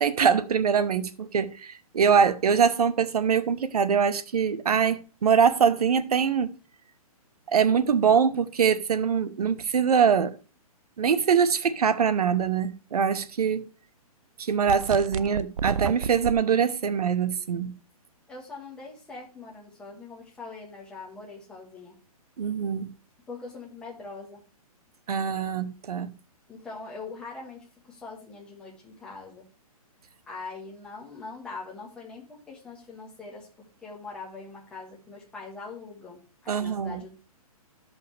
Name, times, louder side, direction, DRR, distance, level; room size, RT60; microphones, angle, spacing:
voice 1, 0.0-6.5 7.5-10.3 11.0-13.6 14.4-17.7 22.4-22.9 25.1-26.1 36.5-37.0, right 7 dB, 80° right, 0.9 m, -23 dB
sound 1, 14.7-16.3, right 7 dB, 60° right, 0.4 m, -30 dB
voice 2, 18.3-21.9 23.3-24.4 26.5-29.5 30.3-37.2, left 4 dB, 5° left, 1.4 m, -42 dB
12.5 x 5.6 x 3.3 m
hypercardioid pair, 175°, 19 cm